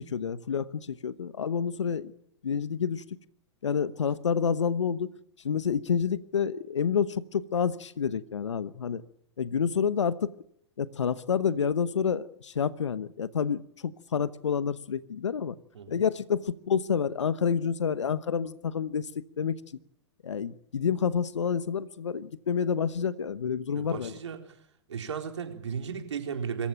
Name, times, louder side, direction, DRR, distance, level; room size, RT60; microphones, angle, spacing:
voice 1, 0.0-2.1 2.4-3.0 3.6-5.1 5.4-9.0 9.4-10.3 10.8-15.6 15.9-19.6 20.2-24.2, left 7 dB, 80° left, 16 dB, 1.0 m, -28 dB
voice 2, 23.7-24.4 24.9-26.7, right 7 dB, 80° right, 4 dB, 4.0 m, -35 dB
25.5 x 14.5 x 9.1 m, 0.74 s
hypercardioid pair, 105°, 15 cm